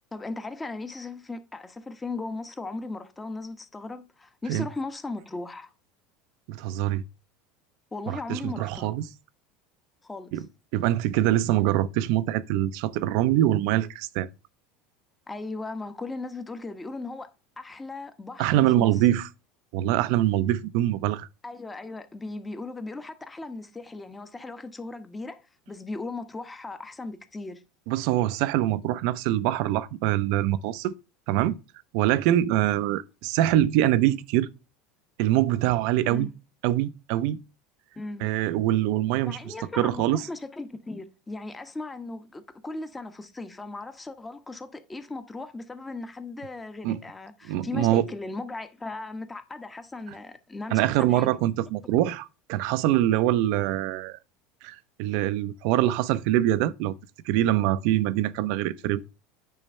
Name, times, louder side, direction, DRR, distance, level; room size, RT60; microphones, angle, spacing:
voice 1, 0.1-5.7 7.9-8.9 10.0-10.4 15.3-17.3 17.6-19.2 21.4-27.6 36.0-36.3 38.0-38.3 39.3-51.4 51.8-51.9, left 3 dB, 15° left, 1.0 m, -37 dB
voice 2, 6.5-7.0 8.1-9.0 10.3-10.4 10.7-14.3 18.4-19.3 19.7-21.3 27.9-30.9 31.3-31.6 31.9-34.5 35.2-36.3 36.6-37.4 38.2-40.3 46.8-47.0 47.4-48.0 50.7-54.2 54.6-57.0 57.3-59.1, right 13 dB, 65° right, 0.6 m, -24 dB
9.0 x 3.2 x 5.4 m
hypercardioid pair, 90°, 0 cm